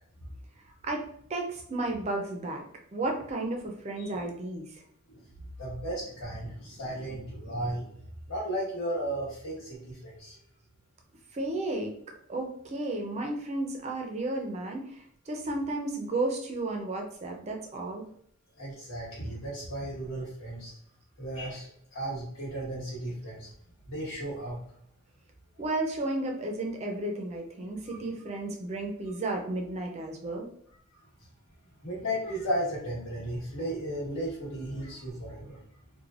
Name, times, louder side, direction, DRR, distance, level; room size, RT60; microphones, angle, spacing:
voice 1, 1.3-2.6 2.9-4.7 11.3-11.9 12.3-18.1 25.6-30.5, right 2 dB, 30° right, 2 dB, 0.4 m, -33 dB
voice 2, 4.0-4.3 5.1-5.2 5.6-7.9 8.3-10.3 18.6-20.7 21.2-23.5 23.9-24.6 27.9-28.0 30.9-31.0 31.8-35.6, right 1 dB, 85° left, -9 dB, 1.3 m, -35 dB
3.2 x 2.1 x 2.4 m, 0.66 s
head